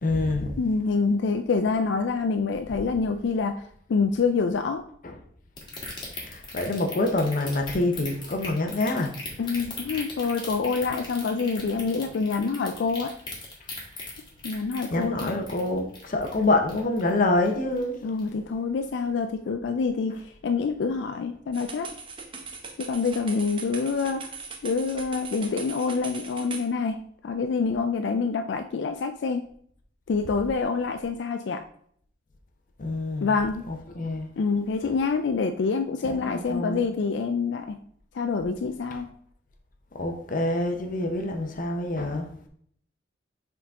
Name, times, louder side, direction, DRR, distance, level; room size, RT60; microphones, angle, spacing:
voice 1, 0.0-0.5 5.0-5.1 6.2-9.1 14.9-17.9 32.8-33.3 33.7-34.3 36.0-36.8 40.0-42.3, left 2 dB, 45° left, 4 dB, 0.7 m, -26 dB
voice 2, 0.6-3.6 3.9-4.8 9.4-13.1 14.4-15.4 18.0-21.9 22.8-24.3 24.6-29.5 30.1-31.6 33.2-33.6 34.4-37.8 38.1-39.1, left 4 dB, 65° left, 7 dB, 0.4 m, -26 dB
sound 1, 5.6-17.2 17.5-17.8 18.2-18.3, left 3 dB, 25° left, 1.7 m, -38 dB
sound 2, 21.5-26.7, right 4 dB, 30° right, 0.8 m, -39 dB
7.1 x 3.8 x 3.6 m, 0.64 s
head